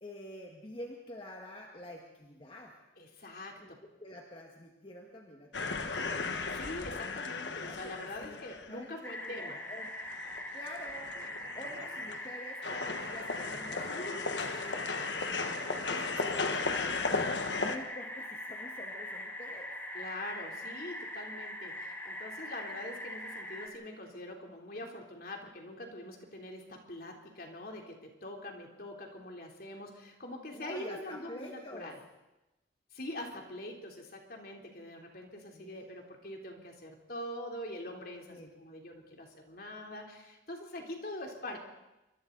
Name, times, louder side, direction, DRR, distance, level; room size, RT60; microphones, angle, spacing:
voice 1, 0.0-2.8 3.6-3.7 4.0-6.2 7.5-10.0 10.5-11.2 11.5-17.1 17.6-19.7 30.5-31.9 35.5-35.8 38.3-38.5, left 1 dB, 30° left, 0 dB, 1.8 m, -48 dB
voice 2, 3.0-3.8 6.5-9.6 15.6-15.9 19.9-32.0 32.9-41.6, left 1 dB, 55° left, 1 dB, 3.4 m, -44 dB
sound 1, 5.5-8.9 9.4-9.5 9.8-12.3 12.6-17.8, left 4 dB, 80° left, 1.4 m, -36 dB
sound 2, 9.0-23.7, left 1 dB, 10° left, 2.3 m, -42 dB
27.0 x 24.0 x 4.0 m, 0.96 s
head